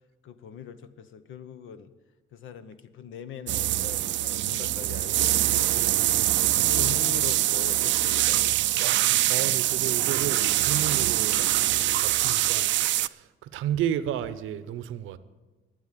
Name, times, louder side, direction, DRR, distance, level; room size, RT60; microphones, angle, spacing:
voice 1, 0.2-1.9 2.3-8.5, left 8 dB, 75° left, 12 dB, 0.9 m, -42 dB
sound 1, 3.5-13.1, right 14 dB, 70° right, 0.4 m, -24 dB
voice 2, 9.3-11.5 12.0-12.7 13.5-15.2, right 10 dB, 90° right, 13 dB, 0.8 m, -31 dB
12.5 x 9.0 x 8.4 m, 1.2 s
cardioid pair, 90°, 20 cm